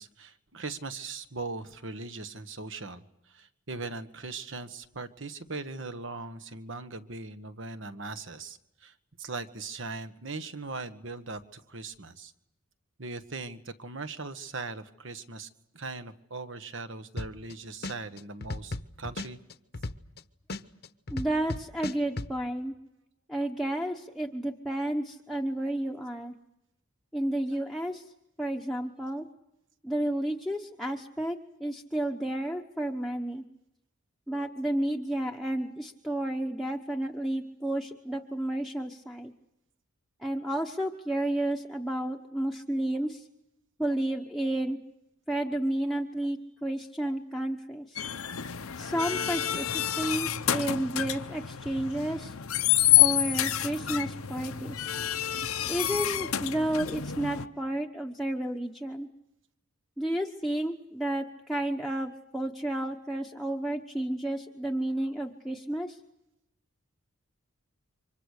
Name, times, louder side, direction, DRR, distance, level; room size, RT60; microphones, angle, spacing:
voice 1, 0.0-12.3 13.0-15.5 15.7-19.4, right 3 dB, 65° right, 10 dB, 1.5 m, -40 dB
sound 1, 17.2-17.5 17.8-20.2 20.5-22.3, left 2 dB, 50° left, 1.0 m, -35 dB
voice 2, 21.1-22.7 23.3-26.3 27.1-28.1 28.4-29.3 29.8-33.4 34.3-39.3 40.2-43.3 43.8-44.8 45.3-48.0 48.8-52.3 53.0-54.9 55.7-59.1 60.0-66.0, right 1 dB, ahead, 0 dB, 1.0 m, -31 dB
sound 2, 48.0-57.4, left 12 dB, 90° left, 0.9 m, -28 dB
29.5 x 25.0 x 6.6 m, 0.85 s
head